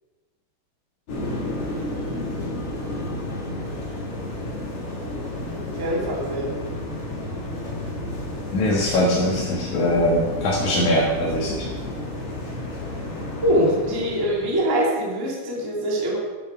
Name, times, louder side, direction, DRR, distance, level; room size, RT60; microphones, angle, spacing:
sound 1, 1.1-14.5, left 1 dB, 40° left, 2.8 m, -31 dB
voice 1, 5.7-6.5 13.4-16.2, equal, 10° right, -3 dB, 1.3 m, -23 dB
voice 2, 8.5-11.7, left 1 dB, 60° left, -5 dB, 2.7 m, -22 dB
12.0 x 9.3 x 4.5 m, 1.3 s
omnidirectional pair, 4.4 m